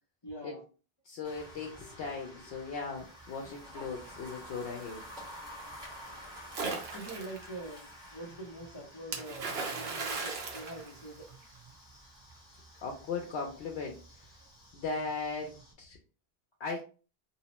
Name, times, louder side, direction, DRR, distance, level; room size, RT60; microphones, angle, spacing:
voice 1, 0.2-0.6 6.0-6.5 6.9-11.3, right 2 dB, 30° left, -1 dB, 0.6 m, -45 dB
voice 2, 1.0-5.0 12.8-14.0 14.7-16.0 16.6-16.8, left 4 dB, 80° left, 0 dB, 0.8 m, -38 dB
sound 1, 1.2-15.7, equal, 5° right, 0.9 m, -50 dB
Splash splatter, 6.5-7.5 9.1-11.6, right 4 dB, 75° right, 0.9 m, -37 dB
2.8 x 2.0 x 2.9 m, 0.36 s
omnidirectional pair, 1.1 m